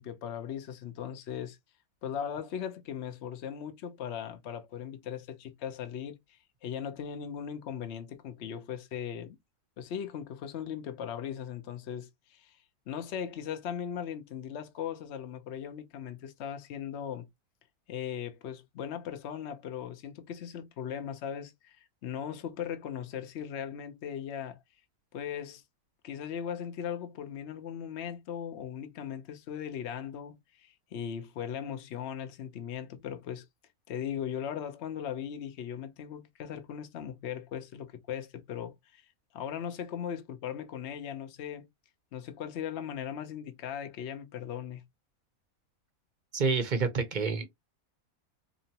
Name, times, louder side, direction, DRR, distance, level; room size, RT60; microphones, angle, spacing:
voice 1, 0.0-1.6 2.0-6.2 6.6-9.4 9.8-12.6 12.9-17.3 17.9-21.8 22.0-24.6 25.1-25.6 26.0-33.4 33.9-39.0 39.3-41.7 42.1-44.8, left 8 dB, 55° left, 0.9 m, -38 dB
voice 2, 46.3-47.5, right 4 dB, 40° right, 0.7 m, -28 dB
4.2 x 2.9 x 2.8 m
omnidirectional pair, 1.5 m